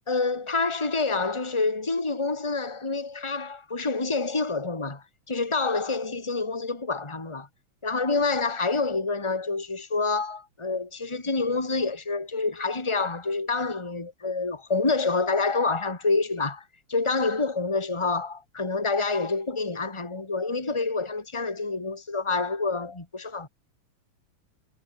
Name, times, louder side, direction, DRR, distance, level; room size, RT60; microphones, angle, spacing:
voice 1, 0.1-7.5 7.8-16.6 16.9-23.5, left 3 dB, 10° left, 3.1 m, -27 dB
omnidirectional pair, 3.5 m